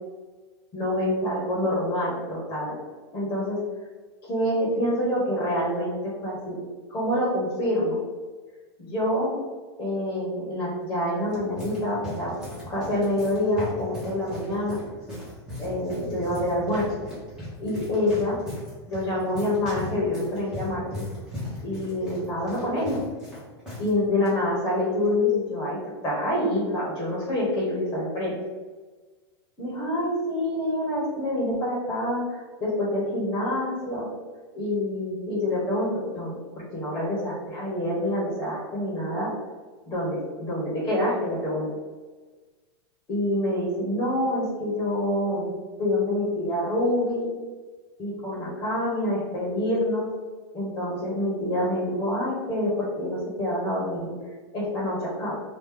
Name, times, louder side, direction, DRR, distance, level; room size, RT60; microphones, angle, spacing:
voice 1, 0.7-2.8 3.1-3.6 4.2-6.6 6.9-8.0 8.8-9.4 9.8-12.3 12.7-14.8 15.6-16.9 17.6-18.4 18.9-21.0 21.6-23.0 23.8-28.3 29.6-34.1 34.5-39.3 39.9-41.8 43.1-45.5 45.8-47.3 48.0-50.1 50.5-54.1 54.5-55.4, left 1 dB, 25° left, -5 dB, 1.3 m, -26 dB
sound 1, 11.1-23.9 24.2-24.3 25.1-25.4, left 1 dB, 5° right, 1.4 m, -38 dB
3.1 x 2.6 x 3.7 m, 1.4 s
supercardioid pair, 135°, 14 cm